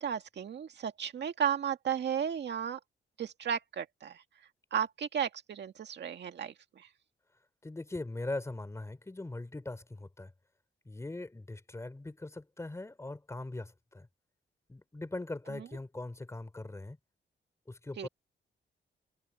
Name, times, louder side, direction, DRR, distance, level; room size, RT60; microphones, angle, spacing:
voice 1, 0.0-2.8 3.2-4.2 4.7-6.9 15.5-15.7 18.0-18.1, right 8 dB, 65° right, 2.0 m, -34 dB
voice 2, 7.6-10.3 10.8-14.1 14.7-17.0 17.7-18.1, left 2 dB, 15° left, 3.3 m, -41 dB
wide cardioid pair, 145°, 19 cm